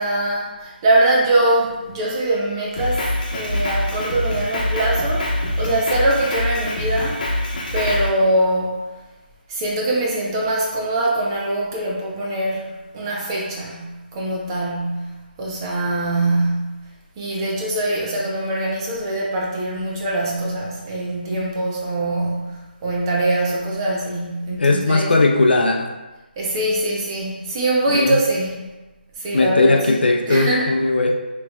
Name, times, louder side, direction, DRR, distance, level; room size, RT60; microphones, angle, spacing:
voice 1, 0.0-3.1 3.3-7.2 7.7-8.8 9.5-16.9 17.2-25.1 26.4-28.7 29.2-30.8, right 1 dB, 25° right, -4 dB, 0.8 m, -23 dB
Drum kit, 2.8-8.1, left 1 dB, 50° left, 1.0 m, -24 dB
voice 2, 24.6-25.9 27.9-28.2 29.3-31.1, left 2 dB, 70° left, 2 dB, 0.6 m, -17 dB
5.9 x 3.2 x 2.3 m, 1.1 s
figure-of-eight pair, 155°, 6 cm